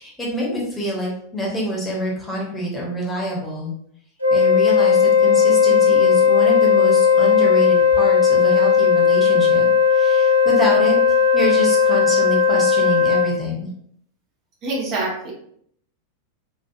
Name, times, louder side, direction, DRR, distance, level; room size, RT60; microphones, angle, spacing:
voice 1, 0.0-3.7 4.3-11.0 11.3-13.7, equal, 15° left, -4 dB, 0.9 m, -26 dB
Wind instrument woodwind instrument, 4.2-13.4, left 6 dB, 85° right, 0.4 m, -16 dB
voice 2, 14.6-15.3, right 2 dB, 40° right, -2 dB, 0.7 m, -25 dB
3.0 x 2.3 x 2.4 m, 0.67 s
figure-of-eight pair, 90°, 0 cm